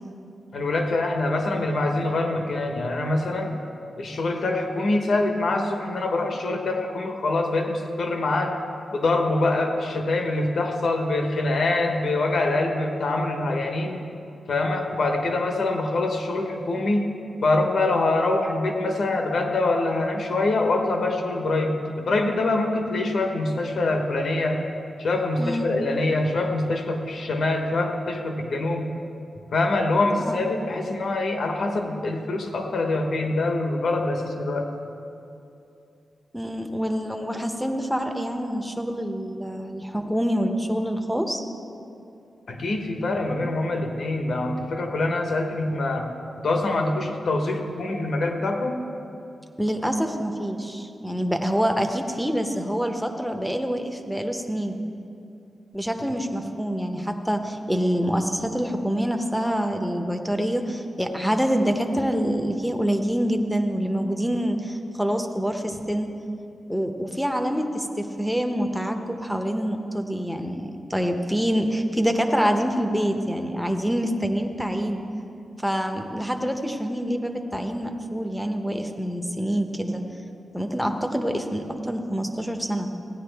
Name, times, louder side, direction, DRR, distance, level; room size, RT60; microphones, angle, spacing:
voice 1, 0.5-3.6 4.0-8.6 8.9-14.0 14.5-17.1 17.4-24.6 25.0-28.9 29.5-34.7 42.5-46.1 46.4-48.8, left 2 dB, 60° left, 4 dB, 1.0 m, -24 dB
voice 2, 25.4-25.8 30.2-30.5 36.3-41.4 49.6-54.8 55.7-66.1 66.7-75.0 75.6-80.0 80.5-82.9, equal, ahead, 5 dB, 0.6 m, -26 dB
16.0 x 9.7 x 3.4 m, 2.6 s
wide cardioid pair, 145°, 0 cm